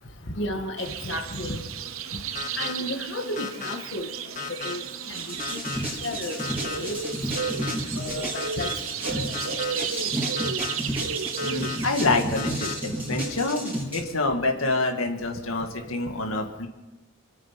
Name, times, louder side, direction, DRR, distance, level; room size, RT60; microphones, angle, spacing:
voice 1, 0.4-1.6 2.1-2.2 2.6-4.1 4.5-4.8 5.1-5.6 6.0-6.4 6.8-7.0 8.0-8.7 9.0-9.6, left 1 dB, 60° left, 3 dB, 1.9 m, -33 dB
sound 1, 0.8-12.2, right 7 dB, 90° right, 0.9 m, -33 dB
sound 2, 2.3-2.7 3.4-3.7 4.4-4.7 5.4-5.8 6.4-6.8 7.4-7.7 8.3-8.7 9.3-9.7 10.4-10.7 11.4-11.8 12.4-12.7, left 5 dB, 35° left, 1.7 m, -34 dB
walking backwards.R, 5.1-14.0, equal, 10° right, 3.9 m, -32 dB
voice 2, 11.4-16.7, left 3 dB, 90° left, 3 dB, 1.9 m, -27 dB
27.0 x 9.1 x 5.8 m, 1.1 s
head